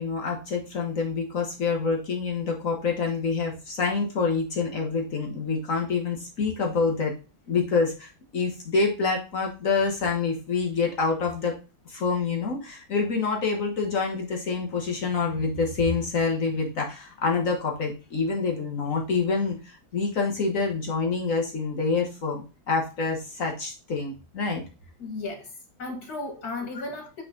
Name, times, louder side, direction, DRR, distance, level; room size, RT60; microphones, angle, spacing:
voice 1, 0.0-7.1 7.5-11.6 11.8-24.6 26.7-26.8, left 4 dB, 60° left, 1 dB, 1.6 m, -27 dB
voice 2, 25.0-25.5 25.8-27.2, left 3 dB, 80° left, 3 dB, 2.6 m, -34 dB
8.7 x 3.7 x 3.8 m, 0.32 s
omnidirectional pair, 1.6 m